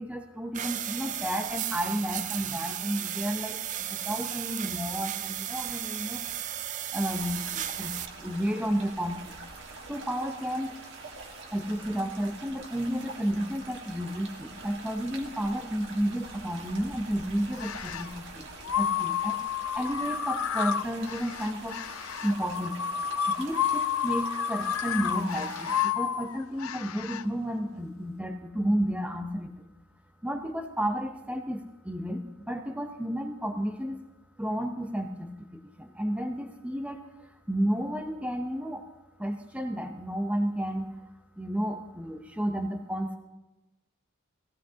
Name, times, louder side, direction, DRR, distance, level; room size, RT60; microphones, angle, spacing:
voice 1, 0.0-9.4 9.9-10.8 11.5-18.5 18.8-19.4 19.7-21.8 22.2-22.8 23.3-29.6 30.2-34.0 34.4-38.8 39.2-41.0 41.4-43.2, equal, 5° right, 4 dB, 0.8 m, -32 dB
sound 1, 0.5-8.1, right 11 dB, 35° right, 0.4 m, -34 dB
sound 2, 7.0-25.9, right 3 dB, 60° right, 1.7 m, -45 dB
sound 3, 17.5-18.1 18.6-27.2, left 8 dB, 75° left, 0.5 m, -31 dB
18.5 x 16.0 x 2.8 m, 1.1 s
head